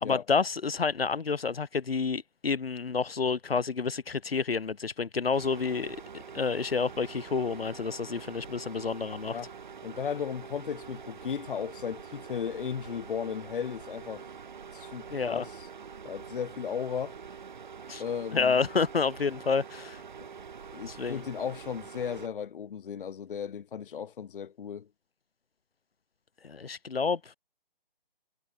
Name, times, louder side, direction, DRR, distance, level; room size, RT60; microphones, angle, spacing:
voice 1, 0.0-6.0 6.3-9.4 15.1-15.5 17.9-18.0 18.3-20.0 20.9-21.2 26.4-27.2, left 5 dB, 85° left, 0.8 m, -29 dB
sound 1, 5.3-22.3, right 6 dB, 55° right, 1.2 m, -45 dB
sound 2, 5.8-14.5, right 13 dB, 25° right, 4.0 m, -68 dB
voice 2, 9.8-14.3 14.7-15.7 16.0-17.2 18.0-18.5 20.7-24.9, left 7 dB, 65° left, 0.4 m, -35 dB
figure-of-eight pair, 150°, 29 cm